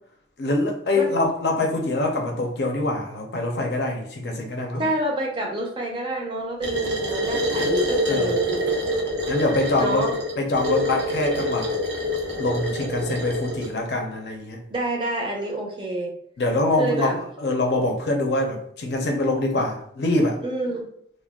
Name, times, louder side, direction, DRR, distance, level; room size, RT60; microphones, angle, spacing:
voice 1, 0.4-4.9 7.6-7.7 8.1-8.3 9.3-10.0 10.4-11.7 12.4-14.6 16.4-20.4, left 2 dB, 70° left, 2 dB, 0.5 m, -24 dB
voice 2, 4.8-8.8 9.8-10.2 14.7-16.1 16.8-17.2 20.4-20.9, right 1 dB, 30° right, 0 dB, 0.5 m, -27 dB
sound 1, 6.6-13.7, equal, 85° right, 0.8 m, -26 dB
2.3 x 2.1 x 3.4 m, 0.67 s
head